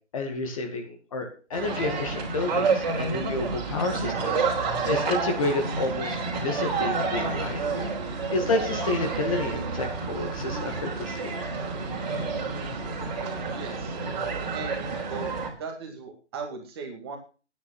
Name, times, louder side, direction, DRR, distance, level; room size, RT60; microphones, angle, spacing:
voice 1, 0.1-4.4 4.8-7.6 8.3-11.4, left 3 dB, 30° left, 4 dB, 2.1 m, -30 dB
sound 1, 1.5-15.5, right 4 dB, 35° right, 3.8 m, -29 dB
voice 2, 13.5-14.0 14.5-15.3 15.6-17.2, right 5 dB, 20° right, 2 dB, 2.2 m, -38 dB
10.0 x 9.9 x 6.3 m, 0.36 s
hypercardioid pair, 165°, 35 cm